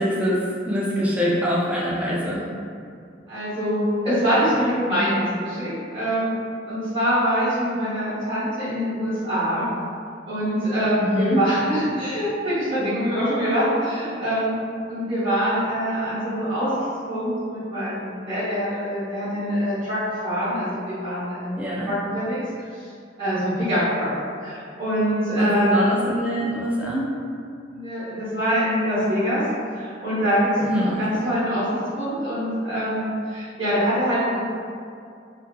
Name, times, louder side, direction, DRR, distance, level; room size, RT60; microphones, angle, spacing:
voice 1, 0.0-2.4 11.0-11.4 21.6-21.9 25.4-27.1 30.6-31.2, equal, 5° right, -6 dB, 0.4 m, -24 dB
voice 2, 3.3-9.7 10.3-14.6 14.9-21.6 21.8-22.4 22.7-22.9 23.2-24.1 24.4-25.8 27.7-29.4 29.7-30.7 31.0-34.4, equal, 30° right, -16 dB, 0.9 m, -24 dB
2.7 x 2.4 x 2.2 m, 2.3 s
head